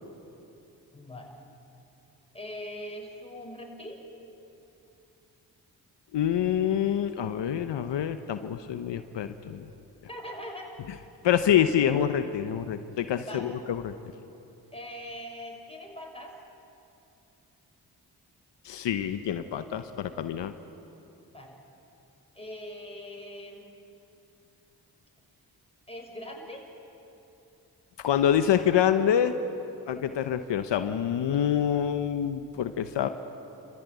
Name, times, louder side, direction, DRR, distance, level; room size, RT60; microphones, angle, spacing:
voice 1, 0.9-1.3 2.3-4.0 10.1-10.7 13.2-13.5 14.7-16.4 21.3-21.6 22.3-23.7 25.9-26.7, left 1 dB, 15° left, 0 dB, 6.2 m, -41 dB
voice 2, 6.1-9.6 11.2-13.9 18.6-20.5 28.0-29.4 29.9-33.1, left 9 dB, 80° left, 9 dB, 1.0 m, -26 dB
29.5 x 15.0 x 9.4 m, 2.9 s
cardioid pair, 50°, 42 cm